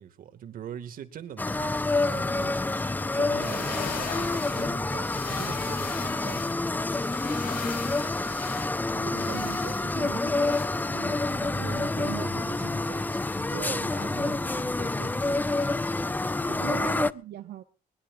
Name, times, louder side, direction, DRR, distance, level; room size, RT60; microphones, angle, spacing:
voice 1, 0.0-2.6 3.1-6.6 8.9-9.6 11.6-15.4 16.4-16.8, right 9 dB, 55° right, 2.4 m, -41 dB
sound 1, 1.4-17.1, left 2 dB, 10° left, 0.7 m, -28 dB
sound 2, 3.3-10.7, left 8 dB, 60° left, 5.7 m, -41 dB
voice 2, 9.1-12.2 12.5-12.6 16.6-17.6, right 13 dB, 70° right, 1.6 m, -40 dB
22.0 x 20.5 x 2.7 m
cardioid pair, 110°, 17 cm